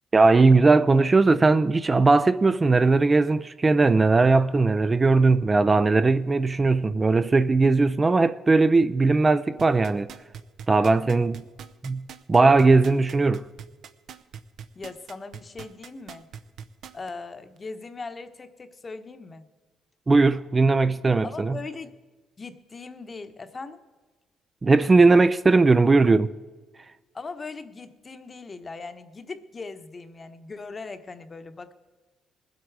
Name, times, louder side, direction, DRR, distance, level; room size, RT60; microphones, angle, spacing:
voice 1, 0.1-10.1 10.7-11.4 11.8-13.5 20.1-21.6 24.6-26.3, right 3 dB, 25° right, 0.4 m, -19 dB
sound 1, 9.6-17.1 17.6-17.7, right 8 dB, 70° right, 0.7 m, -41 dB
voice 2, 14.7-16.3 16.9-19.5 21.2-21.9 22.4-23.8 27.1-31.7, left 4 dB, 35° left, 1.0 m, -39 dB
20.5 x 8.1 x 4.7 m
cardioid pair, 90°, 0 cm